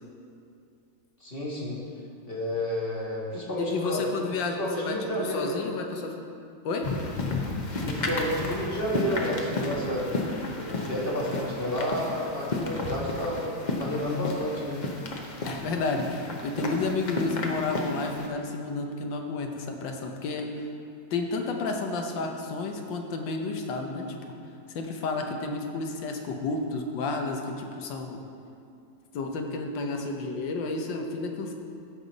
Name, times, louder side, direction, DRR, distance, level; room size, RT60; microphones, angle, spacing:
voice 1, 1.2-1.8 2.3-4.2 4.6-5.6 7.8-10.1 10.5-14.8, equal, 30° left, -5 dB, 1.6 m, -30 dB
voice 2, 3.6-6.2 6.6-6.9 15.4-20.7 21.1-24.2 24.7-28.2 29.1-31.5, left 3 dB, 75° left, 3 dB, 1.6 m, -31 dB
sound 1, 6.8-18.3, left 2 dB, 60° left, 0.4 m, -33 dB
14.5 x 5.5 x 4.0 m, 2.5 s
omnidirectional pair, 2.0 m